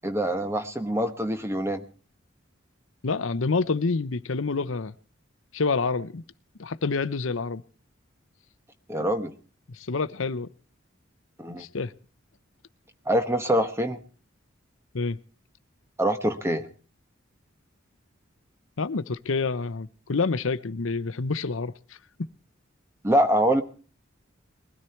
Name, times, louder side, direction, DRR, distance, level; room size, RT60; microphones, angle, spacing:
voice 1, 0.0-1.8 8.9-9.3 11.4-11.7 13.1-14.0 16.0-16.7 23.0-23.6, right 1 dB, 15° right, 1.0 m, -24 dB
voice 2, 3.0-4.9 5.5-6.2 6.6-7.6 9.7-10.5 11.6-11.9 14.9-15.2 18.8-21.7, left 4 dB, 75° left, 0.8 m, -27 dB
21.0 x 13.0 x 4.5 m
head